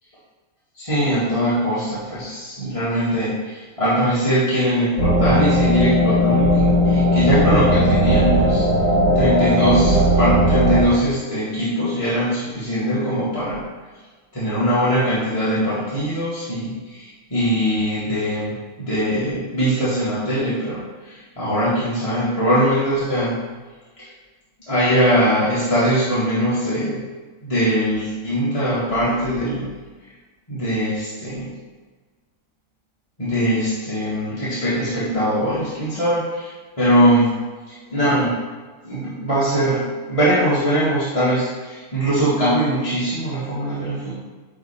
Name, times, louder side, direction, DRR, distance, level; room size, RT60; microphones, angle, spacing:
voice 1, 0.7-8.6 9.1-13.6 14.3-23.4 24.0-24.1 24.7-27.0 27.4-29.7 30.5-31.5 33.2-37.3 37.9-38.4 38.8-44.2, equal, 25° left, -11 dB, 1.8 m, -21 dB
sound 1, 5.0-10.8, equal, 60° right, 1.8 m, -17 dB
9.9 x 3.4 x 4.3 m, 1.4 s
omnidirectional pair, 1.6 m